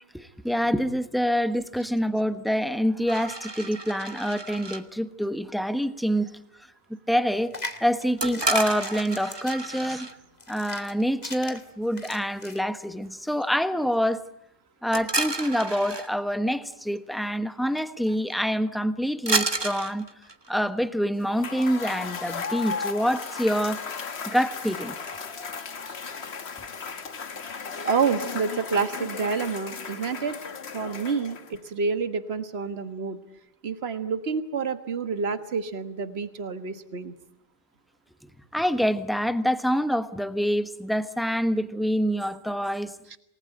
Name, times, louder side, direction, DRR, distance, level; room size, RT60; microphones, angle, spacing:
voice 1, 0.1-6.3 7.1-7.5 7.8-10.1 10.5-14.2 14.8-20.1 20.5-24.9 38.5-42.9, equal, ahead, 1.2 m, -26 dB
sound 1, 3.1-4.8 8.2-10.1 14.9-16.1 17.7-17.8 18.1-18.3 19.3-20.7, right 2 dB, 25° right, 1.5 m, -30 dB
sound 2, 7.3-12.6, left 2 dB, 40° left, 2.4 m, -40 dB
Cheering / Applause / Crowd, 21.2-31.7, left 5 dB, 75° left, 1.6 m, -36 dB
voice 2, 27.8-30.4 30.7-33.2 33.6-37.1, right 5 dB, 70° right, 1.6 m, -28 dB
28.0 x 19.5 x 9.0 m
omnidirectional pair, 1.1 m